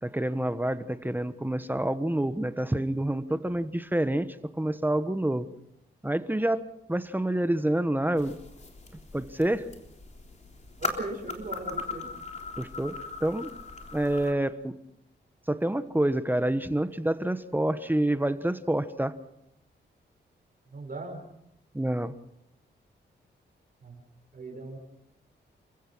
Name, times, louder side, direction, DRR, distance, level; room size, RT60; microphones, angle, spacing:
voice 1, 0.0-5.5 6.0-6.6 6.9-8.4 9.1-9.7 12.6-13.5 13.9-14.7 15.5-19.1 21.7-22.2, right 1 dB, 10° right, 12 dB, 1.2 m, -27 dB
sound 1, 8.2-14.3, left 3 dB, 40° left, 3.6 m, -39 dB
voice 2, 10.8-12.1 20.7-21.2 23.8-24.0 24.3-24.8, right 2 dB, 50° right, 3 dB, 5.8 m, -38 dB
29.0 x 16.0 x 6.2 m, 0.80 s
cardioid pair, 80°, 19 cm